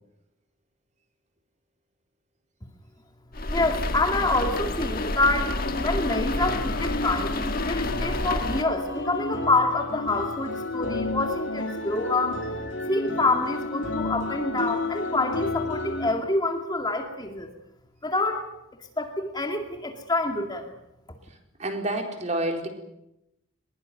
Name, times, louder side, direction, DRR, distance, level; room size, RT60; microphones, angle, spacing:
sound 1, 3.3-8.6, left 2 dB, 40° left, 1.8 m, -29 dB
voice 1, 3.5-12.4 12.9-17.5 18.0-18.5 19.0-20.7, left 2 dB, 20° left, 4 dB, 2.2 m, -27 dB
sound 2, 5.6-16.1, left 2 dB, 60° left, 3.3 m, -31 dB
voice 2, 21.6-22.7, right 1 dB, 30° right, 4 dB, 4.2 m, -28 dB
22.0 x 21.5 x 9.3 m, 0.84 s
head